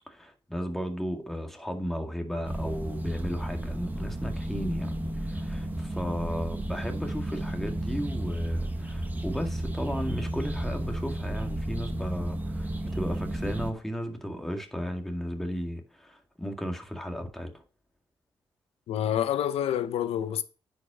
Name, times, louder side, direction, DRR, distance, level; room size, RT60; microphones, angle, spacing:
voice 1, 0.1-17.6, equal, 5° left, 2.0 m, -35 dB
sound 1, 2.5-13.7, right 1 dB, 20° right, 1.5 m, -32 dB
voice 2, 18.9-20.4, left 10 dB, 85° left, 0.8 m, -27 dB
9.7 x 5.3 x 5.0 m
cardioid pair, 110°, 10 cm